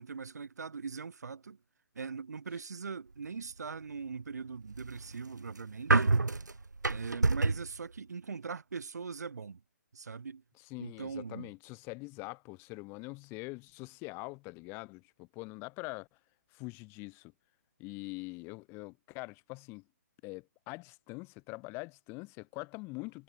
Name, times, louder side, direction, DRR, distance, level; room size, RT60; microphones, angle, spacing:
voice 1, 0.0-1.6 2.0-6.2 6.9-9.6 9.9-10.4 10.8-11.5, right 5 dB, 70° right, 6.9 m, -41 dB
sound 1, 4.5-7.8, right 3 dB, 85° right, 1.7 m, -28 dB
voice 2, 10.7-16.1 16.5-17.3 17.8-19.8 20.2-23.2, left 26 dB, 25° left, 4.9 m, -44 dB
figure-of-eight pair, 135°, 9 cm